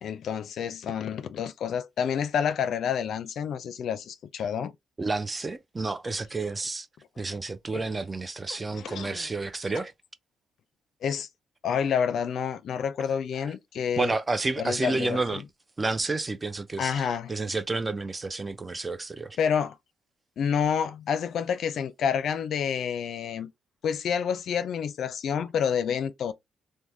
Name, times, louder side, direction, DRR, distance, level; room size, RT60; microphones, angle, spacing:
voice 1, 0.0-4.7 7.7-7.8 8.5-9.3 11.0-11.3 11.6-14.1 14.6-15.2 16.8-17.3 19.4-19.8 20.4-23.5 23.8-26.3, left 7 dB, 65° left, 0.4 m, -28 dB
voice 2, 5.0-6.9 7.2-9.9 13.5-13.6 14.0-15.4 15.8-19.4, right 3 dB, 25° right, 0.4 m, -30 dB
3.3 x 2.1 x 2.6 m
cardioid pair, 90°, 0 cm